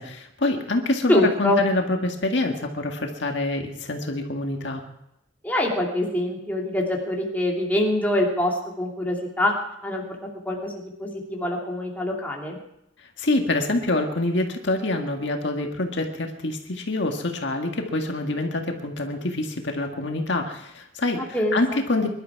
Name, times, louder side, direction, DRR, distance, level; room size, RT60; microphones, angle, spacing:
voice 1, 0.0-4.8 13.2-21.2 21.5-22.1, left 2 dB, 65° left, 3 dB, 1.8 m, -26 dB
voice 2, 1.1-1.6 5.4-9.5 9.8-10.2 10.4-12.6 21.3-21.8, left 1 dB, 10° left, -2 dB, 2.6 m, -24 dB
24.0 x 12.0 x 4.7 m, 0.84 s
head